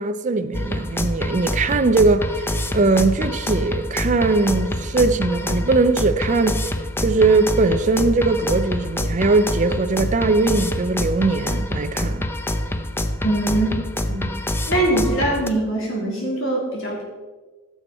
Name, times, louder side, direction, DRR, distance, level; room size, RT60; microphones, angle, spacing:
voice 1, 0.0-6.6 7.0-12.3, right 3 dB, 35° right, 0.5 m, -20 dB
sound 1, 0.5-15.5, left 1 dB, 10° left, 0.6 m, -26 dB
voice 2, 13.2-13.7 14.0-14.3 14.7-17.0, right 2 dB, 65° left, 3.6 m, -22 dB
14.5 x 7.0 x 4.2 m
head